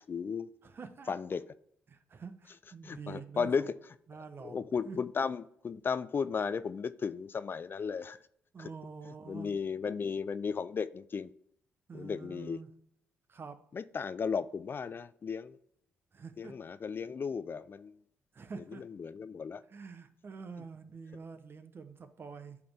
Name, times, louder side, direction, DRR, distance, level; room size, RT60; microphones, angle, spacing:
voice 1, 0.1-0.5 1.1-1.4 2.8-3.8 4.4-8.2 8.6-8.7 9.3-11.3 11.9-12.6 13.7-15.6 16.4-17.9 18.8-19.6, left 6 dB, 45° left, 15 dB, 0.4 m, -35 dB
voice 2, 0.6-1.1 1.9-3.7 4.1-5.0 8.5-9.5 11.9-12.7 13.3-13.6 16.1-16.6 18.3-18.8 19.7-22.6, right 5 dB, 45° right, 10 dB, 0.9 m, -47 dB
8.5 x 4.3 x 3.5 m, 0.69 s
supercardioid pair, 55°, 5 cm